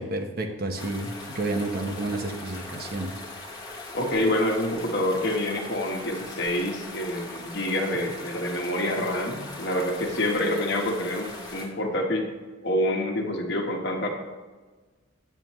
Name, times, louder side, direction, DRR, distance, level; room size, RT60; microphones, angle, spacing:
voice 1, 0.0-3.1, right 2 dB, 45° right, 4 dB, 0.9 m, -30 dB
sound 1, 0.8-11.7, left 2 dB, 20° left, 1.3 m, -40 dB
voice 2, 3.9-12.3 12.6-14.1, left 1 dB, 55° left, 1 dB, 1.3 m, -27 dB
9.1 x 9.0 x 3.1 m, 1.3 s
head